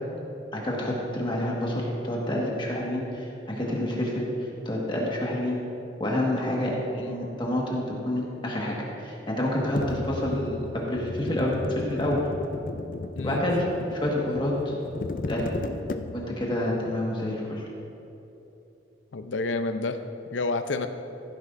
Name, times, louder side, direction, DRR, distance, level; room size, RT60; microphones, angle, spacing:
voice 1, 0.5-4.2 4.6-5.6 6.0-6.7 7.0-12.2 13.2-13.6 13.9-14.7 15.3-15.5 16.1-17.6, left 1 dB, 25° left, -3 dB, 1.6 m, -28 dB
sound 1, 9.8-16.5, left 2 dB, 45° left, 0.4 m, -35 dB
voice 2, 19.1-20.0 20.3-20.9, left 3 dB, 85° left, 8 dB, 0.6 m, -29 dB
15.5 x 10.0 x 2.6 m, 3.0 s
head